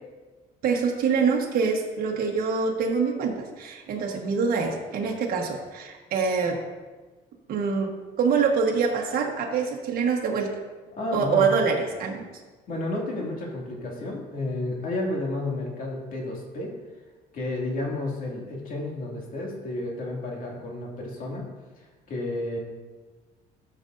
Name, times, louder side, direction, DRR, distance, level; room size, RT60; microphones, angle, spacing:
voice 1, 0.6-6.6 7.5-7.9 8.2-10.5 11.1-12.2, right 5 dB, 60° right, 0 dB, 1.3 m, -25 dB
voice 2, 11.0-11.5 12.7-16.7 17.3-21.5 21.8-22.6, left 2 dB, 55° left, -2 dB, 2.3 m, -31 dB
13.5 x 6.7 x 2.6 m, 1.3 s
cardioid pair, 110°, 17 cm